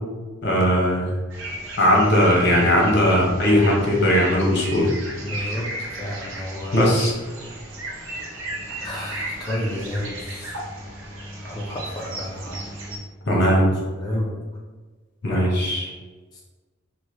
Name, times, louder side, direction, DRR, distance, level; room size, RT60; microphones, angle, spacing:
voice 1, 0.4-1.1 1.8-4.9 6.7-7.1 13.3-13.7 15.2-15.9, equal, 60° left, -2 dB, 0.8 m, -18 dB
sound 1, 1.3-13.0, right 1 dB, 80° right, 0.7 m, -35 dB
voice 2, 5.2-6.9 8.8-10.6 11.4-12.6 13.2-13.4 13.8-14.4 15.3-15.5 16.3-16.4, left 1 dB, 20° left, -4 dB, 0.4 m, -31 dB
3.0 x 2.2 x 3.2 m, 1.3 s
head